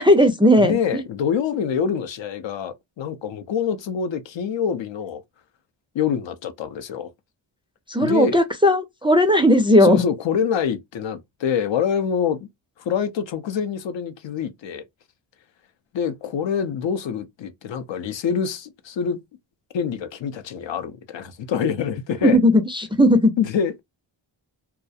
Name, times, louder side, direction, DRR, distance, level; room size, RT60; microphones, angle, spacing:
voice 1, 0.0-1.0 7.9-10.0 22.2-23.3, equal, 10° right, 0.3 m, -16 dB
voice 2, 0.6-5.2 5.9-7.1 8.0-8.4 9.8-12.5 12.8-14.8 15.9-19.2 19.7-22.4 23.4-23.8, left 7 dB, 65° left, 0.6 m, -25 dB
2.3 x 2.0 x 2.6 m
cardioid pair, 70°, 49 cm